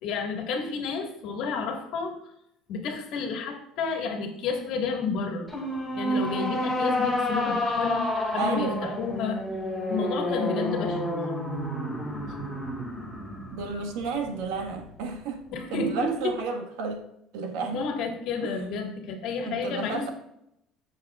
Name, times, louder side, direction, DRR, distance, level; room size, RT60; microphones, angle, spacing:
voice 1, 0.0-2.1 2.7-5.5 5.9-9.4 9.9-11.2 15.5-16.3 17.7-20.1, left 4 dB, 50° left, 3 dB, 1.7 m, -31 dB
sound 1, 5.5-14.9, left 1 dB, ahead, 1.9 m, -30 dB
voice 2, 8.4-9.1 13.5-15.4 15.7-17.0 17.3-17.9 18.4-18.5 19.4-20.1, right 4 dB, 80° right, 4 dB, 1.5 m, -32 dB
15.5 x 6.6 x 2.4 m, 0.79 s
cardioid pair, 175°, 0 cm